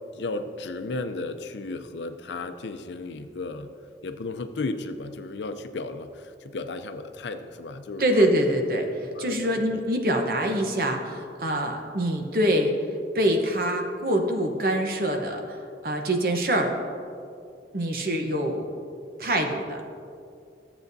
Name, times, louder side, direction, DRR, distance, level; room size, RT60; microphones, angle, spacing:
voice 1, 0.1-3.7 4.0-8.3 9.1-9.8, left 3 dB, 85° left, 9 dB, 0.5 m, -34 dB
voice 2, 8.0-12.7 13.1-16.7 17.7-18.7 19.2-19.8, right 1 dB, 55° right, 3 dB, 0.9 m, -25 dB
14.0 x 7.8 x 2.7 m, 2.5 s
head